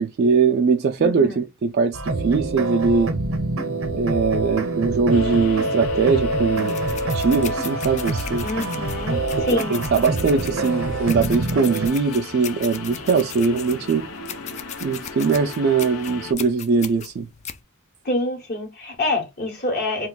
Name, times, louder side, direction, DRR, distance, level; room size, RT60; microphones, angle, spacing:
voice 1, 0.0-3.1 3.9-6.8 7.1-8.5 9.7-14.1 14.8-17.3, right 5 dB, 50° right, 0.3 m, -21 dB
voice 2, 1.0-1.4 8.4-9.7 18.0-20.1, left 2 dB, 50° left, 1.0 m, -26 dB
sound 1, 1.9-11.9, right 2 dB, 70° right, 0.7 m, -26 dB
sound 2, 5.1-16.3, left 3 dB, 85° left, 0.6 m, -37 dB
sound 3, 6.6-17.6, left 8 dB, 35° left, 0.3 m, -38 dB
2.4 x 2.2 x 3.8 m
head